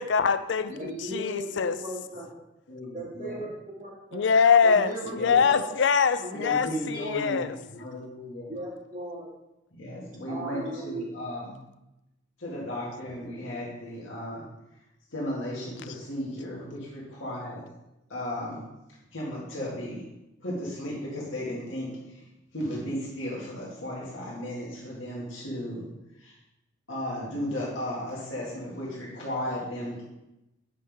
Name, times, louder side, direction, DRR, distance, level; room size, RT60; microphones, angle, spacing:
voice 1, 0.0-1.8 4.1-7.6, left 6 dB, 65° left, 12 dB, 0.4 m, -23 dB
voice 2, 0.7-2.4 2.9-4.3 4.6-5.9 6.2-7.4 8.5-9.3 10.3-11.1, right 1 dB, 40° right, -4 dB, 1.9 m, -37 dB
voice 3, 2.7-3.4 5.0-5.4 6.3-8.5 9.7-11.6 12.4-14.4 15.1-17.6 18.1-18.6 19.1-20.0 20.4-21.9 22.1-22.3 22.5-25.8 26.2-26.3 26.9-30.0, left 1 dB, 80° left, -5 dB, 2.0 m, -35 dB
8.4 x 5.5 x 3.5 m, 0.93 s
head